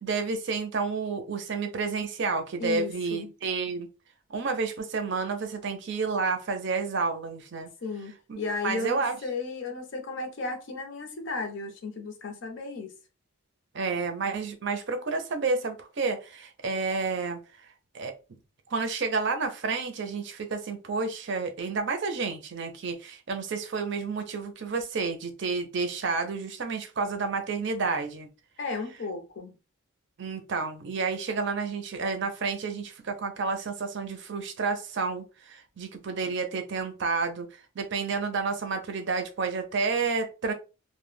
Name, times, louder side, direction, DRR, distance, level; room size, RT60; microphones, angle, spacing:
voice 1, 0.0-3.9 4.3-7.7 8.3-9.2 13.7-17.4 17.9-18.1 18.7-28.3 30.2-37.5 37.8-40.5, right 4 dB, 60° right, 0.5 m, -30 dB
voice 2, 2.6-3.3 7.8-12.9 28.6-29.5, left 3 dB, 60° left, 0.6 m, -34 dB
2.1 x 2.1 x 3.2 m
head